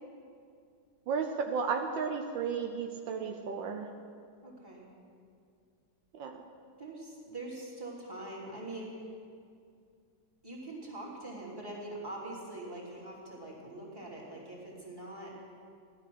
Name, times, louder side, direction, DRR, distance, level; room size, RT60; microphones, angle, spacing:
voice 1, 1.1-3.9 6.1-6.4, right 6 dB, 80° right, 4 dB, 1.5 m, -33 dB
voice 2, 4.4-4.8 6.8-9.1 10.4-15.3, right 2 dB, 10° right, -5 dB, 3.1 m, -43 dB
15.5 x 11.5 x 6.2 m, 2.3 s
omnidirectional pair, 2.1 m